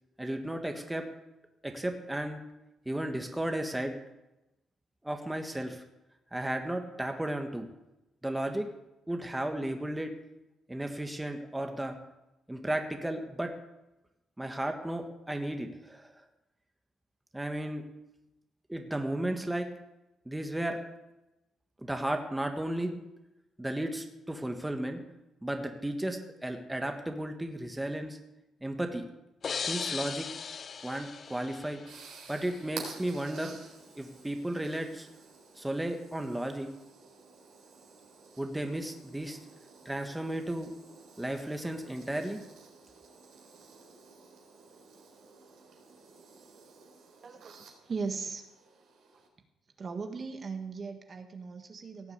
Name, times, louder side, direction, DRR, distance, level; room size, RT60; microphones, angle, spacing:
voice 1, 0.2-1.1 1.6-2.4 2.8-3.9 5.0-5.8 6.3-7.7 8.2-8.7 9.1-10.1 10.7-12.0 12.5-13.5 14.4-16.1 17.3-17.8 18.7-19.7 20.2-20.8 21.8-23.0 23.6-25.0 25.4-28.2 28.6-29.1 29.7-30.3 30.8-31.8 32.3-33.6 34.0-35.1 35.6-36.7 38.4-39.4 39.8-40.7 41.2-42.4, right 1 dB, 10° right, 5 dB, 1.5 m, -34 dB
sound 1, 29.4-32.2, left 6 dB, 45° left, 0.4 m, -37 dB
sound 2, 31.3-49.3, right 5 dB, 75° right, 3.7 m, -52 dB
voice 2, 47.2-48.5 49.8-52.1, right 4 dB, 40° right, 6 dB, 1.6 m, -38 dB
17.0 x 7.0 x 8.1 m, 0.96 s
cardioid pair, 90°, 0 cm